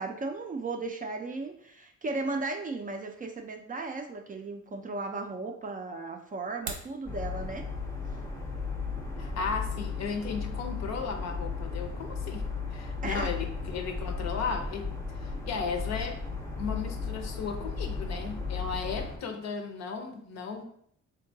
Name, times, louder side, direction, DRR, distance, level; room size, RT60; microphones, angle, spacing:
voice 1, 0.0-7.7 13.0-13.3, right 3 dB, 30° right, 4 dB, 0.3 m, -35 dB
sound 1, 6.4-7.0, right 5 dB, 80° right, 0.6 m, -38 dB
sound 2, 7.1-19.2, left 4 dB, 10° left, 0.6 m, -35 dB
voice 2, 9.2-14.9 15.2-16.2 16.6-20.6, left 5 dB, 60° left, 5 dB, 0.6 m, -35 dB
3.6 x 2.2 x 2.6 m, 0.67 s
cardioid pair, 90°, 30 cm